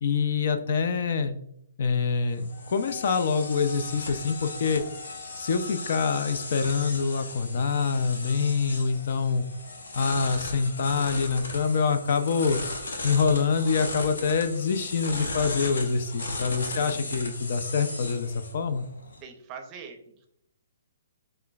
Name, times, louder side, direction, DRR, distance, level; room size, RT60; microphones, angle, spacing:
voice 1, 0.0-1.4 1.8-4.8 5.3-9.5 9.9-12.6 13.0-18.8, left 5 dB, 55° left, 9 dB, 0.5 m, -25 dB
sound 1, 2.0-19.2, left 2 dB, 85° left, 1.1 m, -37 dB
Wind instrument woodwind instrument, 2.5-11.4, left 11 dB, 30° left, 1.2 m, -50 dB
voice 2, 16.4-17.2 19.2-20.3, right 6 dB, 25° right, 5 dB, 0.6 m, -46 dB
5.7 x 3.2 x 2.3 m, 0.73 s
hypercardioid pair, 160°, 0 cm